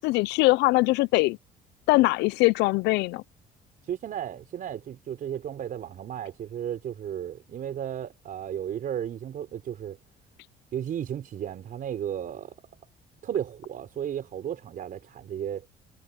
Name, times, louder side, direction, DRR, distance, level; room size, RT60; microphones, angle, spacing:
voice 1, 0.0-1.4 1.9-3.2, left 22 dB, 90° left, 0.5 m, -22 dB
voice 2, 3.8-10.0 10.7-12.6 13.2-15.7, right 10 dB, 55° right, 5.4 m, -34 dB
cardioid pair, 110°, 17 cm